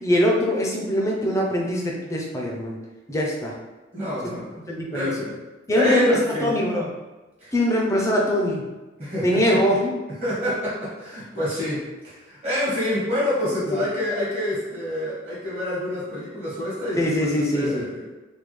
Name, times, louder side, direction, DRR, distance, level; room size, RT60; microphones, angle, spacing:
voice 1, 0.0-2.8 3.1-3.5 4.7-5.1 5.7-6.9 7.5-8.7 9.2-9.9 13.7-13.8 16.9-17.8, left 1 dB, 15° left, -2 dB, 0.5 m, -22 dB
voice 2, 3.9-4.5 4.9-5.3 5.7-6.5 7.4-7.5 9.0-9.6 10.2-18.1, left 1 dB, 35° right, -9 dB, 1.2 m, -27 dB
3.4 x 2.2 x 3.1 m, 1.2 s
head